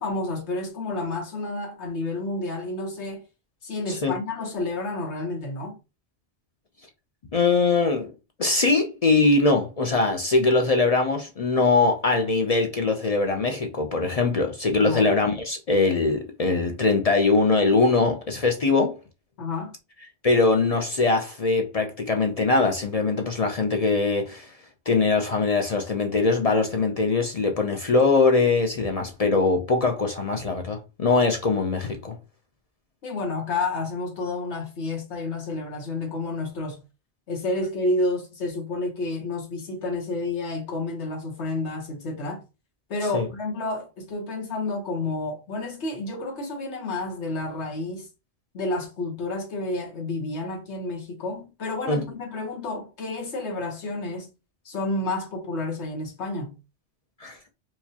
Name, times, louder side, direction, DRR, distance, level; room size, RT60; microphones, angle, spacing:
voice 1, 0.0-3.2 3.6-5.8 14.8-15.1 19.4-19.7 33.0-36.8 37.3-42.4 42.9-48.1 48.5-54.3 54.6-56.5, left 2 dB, 80° left, 1.4 m, -30 dB
voice 2, 7.3-8.1 8.4-19.0 20.2-24.5 24.9-32.2 43.1-43.3 51.9-52.0 57.2-57.4, left 3 dB, 45° left, 0.5 m, -22 dB
4.7 x 2.2 x 2.7 m
omnidirectional pair, 1.1 m